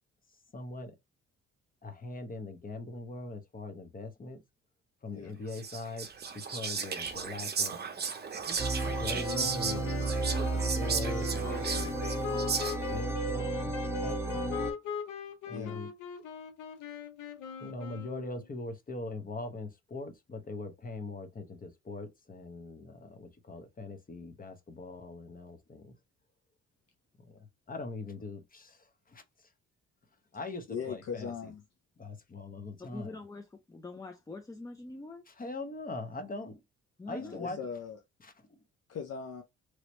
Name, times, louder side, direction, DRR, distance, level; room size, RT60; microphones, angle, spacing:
voice 1, 0.5-0.9 1.8-4.4 5.0-6.1 6.3-7.8 8.9-12.0 12.8-14.5 15.5-15.9 17.6-25.9 27.2-27.4 27.7-29.2 30.3-31.5 32.0-33.2 35.3-36.6 37.1-37.6 38.2-38.3, left 2 dB, 30° left, 0.9 m, -41 dB
Whispering, 5.5-13.0, right 5 dB, 35° right, 0.7 m, -35 dB
sound 1, 8.6-14.7, right 2 dB, 10° right, 1.3 m, -33 dB
sound 2, 9.3-18.4, left 6 dB, 85° left, 0.9 m, -40 dB
voice 2, 15.5-15.8 30.7-31.6 37.2-38.0 38.9-39.4, left 6 dB, 55° left, 0.8 m, -39 dB
voice 3, 32.9-35.2 37.0-37.5, left 2 dB, 10° left, 0.5 m, -44 dB
3.1 x 2.9 x 3.0 m
cardioid pair, 90°, 30 cm